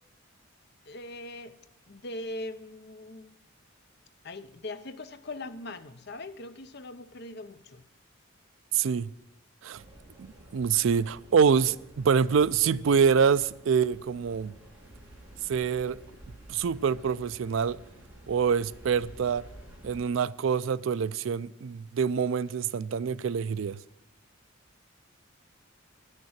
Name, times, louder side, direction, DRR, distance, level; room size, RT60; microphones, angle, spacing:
voice 1, 0.9-1.6 1.9-3.3 4.2-7.8, left 2 dB, 50° left, 0.7 m, -41 dB
voice 2, 8.7-9.1 9.6-9.8 10.2-14.5 15.5-16.0 16.5-17.8 18.3-19.4 19.8-23.8, right 6 dB, 65° right, 0.4 m, -26 dB
sound 1, 9.7-20.0, right 1 dB, 5° right, 2.2 m, -51 dB
12.0 x 6.6 x 8.7 m
head